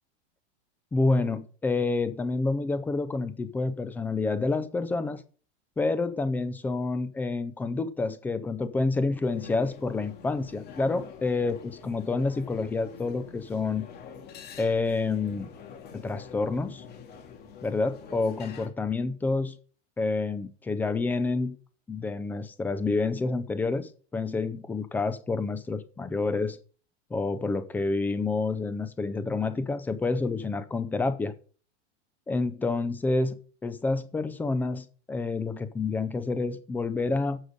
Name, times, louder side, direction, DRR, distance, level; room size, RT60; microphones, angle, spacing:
voice 1, 0.9-5.2 5.8-13.9 14.6-15.5 15.9-16.8 17.6-19.6 20.0-21.6 21.9-26.6 27.1-31.3 32.3-37.4, left 3 dB, 5° left, 0.4 m, -28 dB
sound 1, 9.2-18.7, left 7 dB, 30° left, 2.7 m, -46 dB
11.5 x 6.5 x 5.3 m
supercardioid pair, 160°, 35 cm